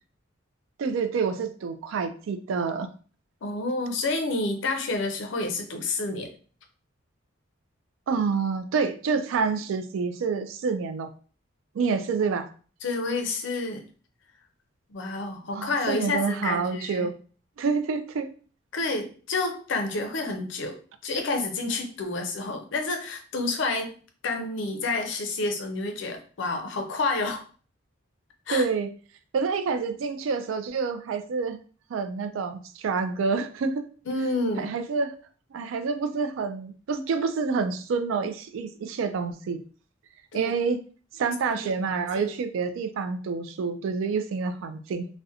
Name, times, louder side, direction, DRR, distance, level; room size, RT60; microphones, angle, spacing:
voice 1, 0.8-2.9 8.1-11.1 11.7-12.5 15.5-17.1 17.6-18.3 28.5-28.9 29.3-31.6 31.9-33.8 34.6-35.1 35.5-39.6 40.3-40.8 41.1-45.1, right 5 dB, 75° right, 9 dB, 0.3 m, -28 dB
voice 2, 3.4-6.3 12.8-13.8 14.9-17.1 18.7-24.0 24.2-27.4 28.5-28.7 34.1-34.7 40.3-40.5 41.5-41.6 41.9-42.3, left 3 dB, 65° left, 5 dB, 0.5 m, -29 dB
2.4 x 2.1 x 2.7 m, 0.40 s
head